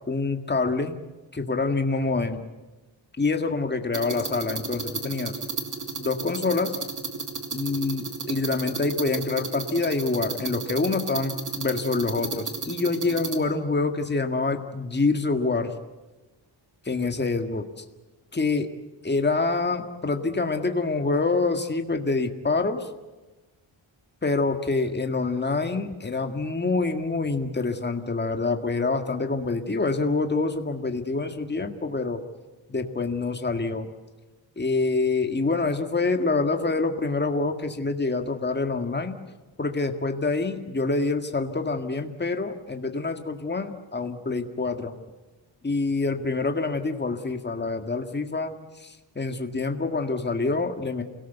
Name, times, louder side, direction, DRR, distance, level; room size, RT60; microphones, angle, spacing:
voice 1, 0.1-1.0 1.3-2.4 3.2-5.4 6.0-6.8 7.5-15.7 16.9-17.7 18.3-18.7 19.0-22.9 24.2-32.2 32.7-33.9 34.6-39.2 39.6-44.9 45.6-48.5 48.8-51.0, left 3 dB, 20° left, 6 dB, 1.8 m, -26 dB
sound 1, 3.9-13.4, right 4 dB, 40° right, 2.4 m, -33 dB
28.5 x 18.5 x 8.1 m, 1.2 s
wide cardioid pair, 130°, 48 cm